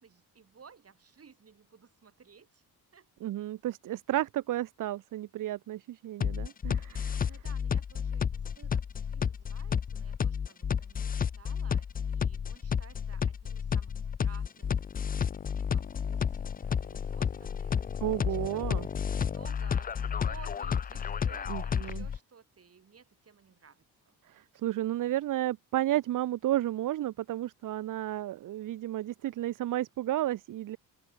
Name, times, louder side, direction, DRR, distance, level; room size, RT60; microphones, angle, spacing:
voice 1, 0.0-2.6 2.9-3.1 7.2-8.7 9.1-15.2 15.5-17.8 18.3-18.7 19.1-19.9 20.2-24.2, right 6 dB, 35° right, 6.1 m, -56 dB
voice 2, 3.2-7.3 18.0-18.9 21.5-22.1 24.3-30.8, right 14 dB, 55° right, 0.6 m, -32 dB
sound 1, 6.2-22.2, left 7 dB, 25° left, 0.4 m, -31 dB
open air
cardioid pair, 130°, 39 cm